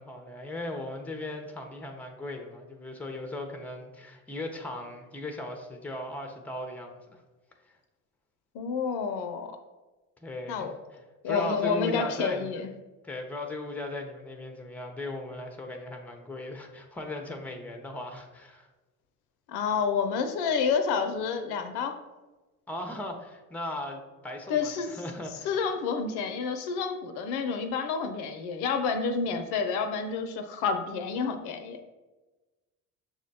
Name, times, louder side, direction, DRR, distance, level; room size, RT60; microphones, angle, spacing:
voice 1, 0.0-7.2 10.2-11.0 11.3-12.5 13.0-18.7 22.7-25.5, left 1 dB, 5° left, 4 dB, 0.6 m, -37 dB
voice 2, 8.5-9.5 10.5-10.7 11.2-12.7 19.5-22.0 24.5-24.9 25.4-31.8, left 5 dB, 65° left, 7 dB, 0.6 m, -29 dB
5.9 x 2.1 x 4.0 m, 1.2 s
hypercardioid pair, 60°, 41 cm